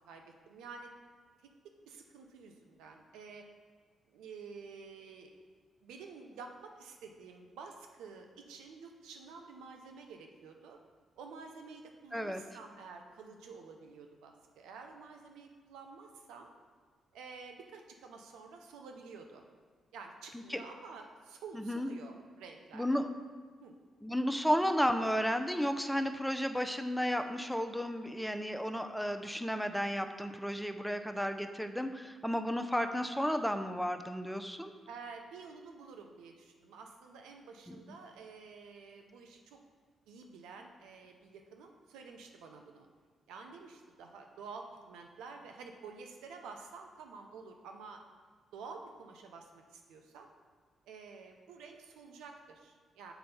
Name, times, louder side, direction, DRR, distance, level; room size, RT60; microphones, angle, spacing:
voice 1, 0.1-0.9 1.9-3.5 4.1-5.3 5.8-10.8 11.2-16.5 17.1-19.4 19.9-23.0 23.6-23.7 34.9-39.6 40.1-42.9 43.3-48.0 48.5-50.3 50.9-53.1, right 4 dB, 80° right, 3 dB, 0.7 m, -50 dB
voice 2, 21.5-21.9 22.7-23.1 24.0-34.7 37.7-37.8, equal, ahead, 7 dB, 0.6 m, -33 dB
7.0 x 4.3 x 5.5 m, 1.5 s
supercardioid pair, 50°, 0 cm